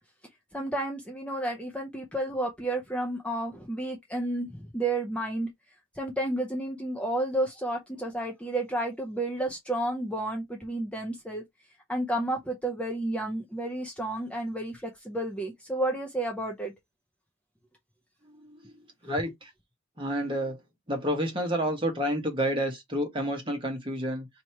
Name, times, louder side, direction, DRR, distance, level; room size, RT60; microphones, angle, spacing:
voice 1, 0.5-5.5 6.0-11.4 11.9-16.7, right 1 dB, 5° left, 0.6 m, -31 dB
voice 2, 18.3-19.5 20.0-20.6 20.9-24.3, equal, 25° right, 1.3 m, -30 dB
3.0 x 2.8 x 4.5 m
head